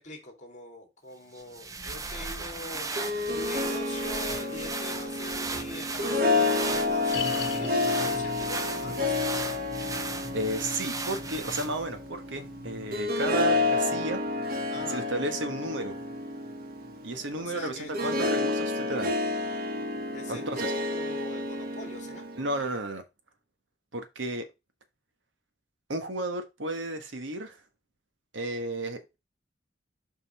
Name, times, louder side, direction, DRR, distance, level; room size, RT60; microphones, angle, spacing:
voice 1, 0.0-9.2 14.7-15.1 17.4-18.5 20.1-22.3, left 1 dB, 40° left, 2.3 m, -43 dB
sound 1, 1.3-12.0, right 3 dB, 20° right, 0.6 m, -36 dB
Harp, 2.7-22.6, left 2 dB, 50° right, 1.2 m, -30 dB
sound 2, 7.1-18.4 18.7-18.8 19.4-19.5, left 5 dB, 65° left, 0.9 m, -43 dB
voice 2, 10.3-14.2 14.9-15.9 17.0-19.1 20.3-20.7 22.4-23.0 23.9-24.4 25.9-27.6 28.3-29.0, right 2 dB, 85° right, 1.4 m, -33 dB
5.7 x 5.3 x 4.3 m
head